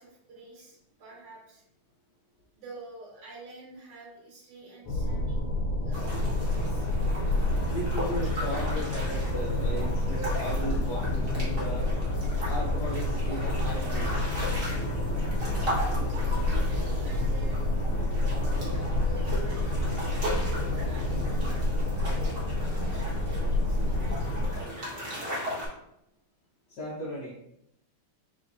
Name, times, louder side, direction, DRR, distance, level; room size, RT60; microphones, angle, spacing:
voice 1, 0.0-1.6 2.6-6.9 16.5-17.8 18.2-21.5 21.9-22.3 22.6-25.4, right 2 dB, 75° right, -3 dB, 2.1 m, -48 dB
sound 1, 4.8-24.6, left 1 dB, 85° left, 1.7 m, -28 dB
sound 2, 5.9-25.7, equal, 35° right, 1.1 m, -37 dB
voice 2, 7.6-11.9 12.4-14.3 26.7-27.4, equal, 65° left, -5 dB, 1.1 m, -36 dB
5.0 x 3.2 x 2.6 m, 0.79 s
omnidirectional pair, 2.4 m